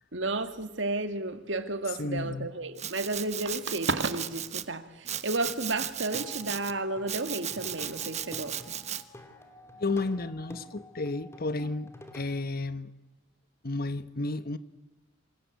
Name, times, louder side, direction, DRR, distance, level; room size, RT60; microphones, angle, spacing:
voice 1, 0.1-4.9 5.2-8.7, right 2 dB, 70° right, 2.1 m, -32 dB
voice 2, 1.9-2.5 9.8-12.9 13.6-14.6, left 2 dB, 50° left, 1.2 m, -32 dB
Domestic sounds home sounds, 2.8-4.7 5.1-6.7 7.1-9.0, right 10 dB, 35° right, 1.1 m, -36 dB
Plucked string instrument, 6.0-12.4, left 1 dB, 15° left, 2.9 m, -49 dB
28.0 x 26.0 x 8.3 m
head